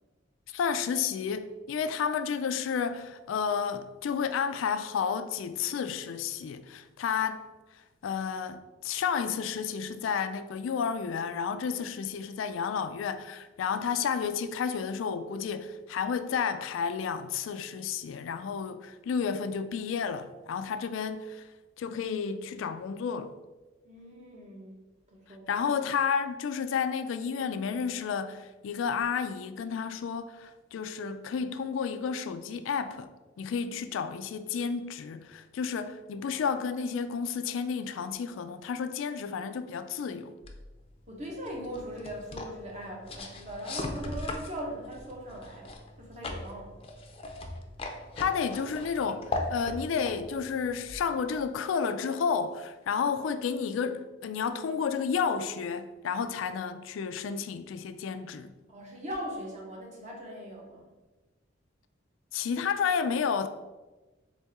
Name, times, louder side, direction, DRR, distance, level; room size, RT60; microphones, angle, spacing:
voice 1, 0.5-7.4 8.0-21.5 21.8-23.3 25.5-33.1 33.4-40.3 48.2-58.5 62.3-63.5, left 6 dB, 85° left, 0.3 m, -31 dB
voice 2, 23.8-24.7 25.1-25.5 41.1-46.7 58.7-60.9, equal, 40° right, 1.1 m, -40 dB
sound 1, 40.4-51.5, left 2 dB, 30° left, 0.5 m, -39 dB
4.1 x 3.7 x 3.5 m
head